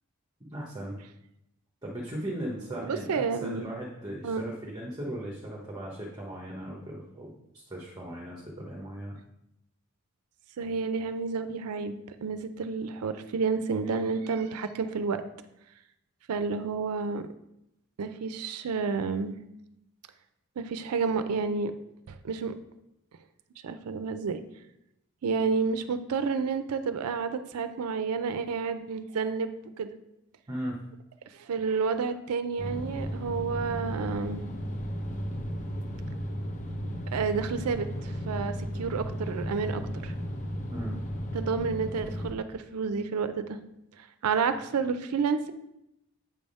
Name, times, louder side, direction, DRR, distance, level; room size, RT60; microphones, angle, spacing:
voice 1, 0.4-1.0 1.8-9.2 30.5-30.8 40.7-41.0, right 1 dB, 20° right, -2 dB, 0.8 m, -38 dB
voice 2, 2.8-3.7 4.2-4.4 10.6-15.2 16.3-17.3 18.0-19.4 20.6-21.7 22.1-22.5 23.6-24.4 25.2-29.9 31.3-34.5 37.1-40.1 41.3-43.6 44.0-45.5, right 5 dB, 85° right, 10 dB, 0.4 m, -30 dB
sound 1, 32.6-42.3, equal, 35° left, 0.7 m, -35 dB
7.6 x 3.4 x 5.3 m, 0.85 s
head